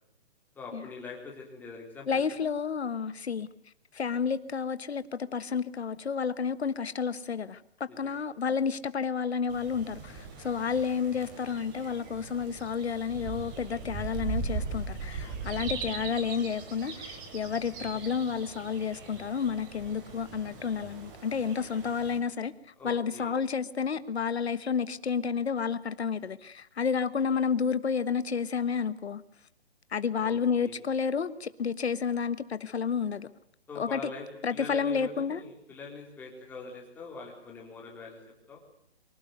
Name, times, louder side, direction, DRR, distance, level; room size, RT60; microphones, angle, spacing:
voice 1, 0.6-2.2 7.9-8.3 15.2-15.7 22.8-23.3 30.2-30.8 33.7-34.2 34.5-38.2 38.5-38.6, left 4 dB, 5° left, 3.8 m, -44 dB
voice 2, 2.1-3.5 3.9-22.5 22.8-29.2 29.9-33.3 33.7-34.0 34.4-35.4, left 6 dB, 75° left, 1.4 m, -30 dB
sound 1, 9.5-22.2, right 4 dB, 20° right, 3.6 m, -40 dB
24.5 x 18.0 x 9.3 m
hypercardioid pair, 170°, 32 cm